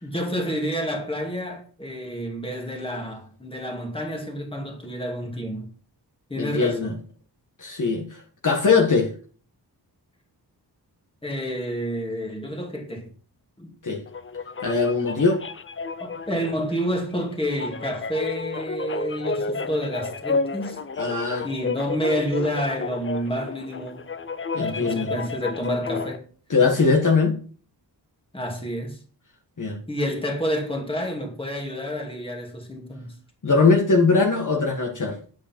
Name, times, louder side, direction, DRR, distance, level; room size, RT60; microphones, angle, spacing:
voice 1, 0.0-5.7 6.3-7.0 11.2-13.1 13.6-13.7 16.0-20.8 21.4-24.1 24.6-26.2 28.3-29.0 29.9-33.1, equal, 15° left, 2.5 m, -29 dB
voice 2, 6.3-6.9 7.6-8.2 8.4-9.1 13.8-14.0 14.6-15.4 21.0-21.5 24.5-25.1 26.5-27.4 29.6-29.8 33.4-35.1, left 4 dB, 45° left, 1.7 m, -21 dB
sound 1, 14.1-26.2, left 4 dB, 30° left, 0.6 m, -31 dB
8.5 x 8.0 x 4.5 m
wide cardioid pair, 115°, 42 cm